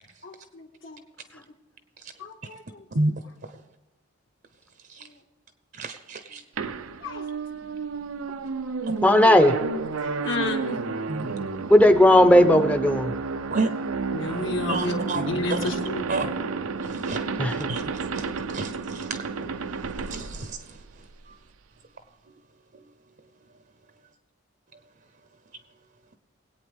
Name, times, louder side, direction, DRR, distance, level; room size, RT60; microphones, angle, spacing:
voice 1, 0.2-1.0 1.3-1.4 2.2-2.9 5.0-5.1 7.0-7.2 10.0-10.8 14.1-16.0, left 2 dB, 65° left, 3 dB, 1.8 m, -31 dB
voice 2, 5.7-6.4 8.9-9.0 11.1-11.5 13.5-13.7 14.7-15.2 15.5-15.7 16.1-16.3 16.8-19.3 20.0-20.8 21.3-21.4 22.7-22.9, right 3 dB, 50° right, 8 dB, 0.7 m, -31 dB
sound 1, 6.6-21.1, right 4 dB, 90° right, 0.6 m, -31 dB
voice 3, 9.0-9.5 11.7-13.1 17.4-17.7, left 1 dB, 5° left, 9 dB, 0.6 m, -16 dB
21.0 x 8.7 x 3.5 m, 1.2 s
head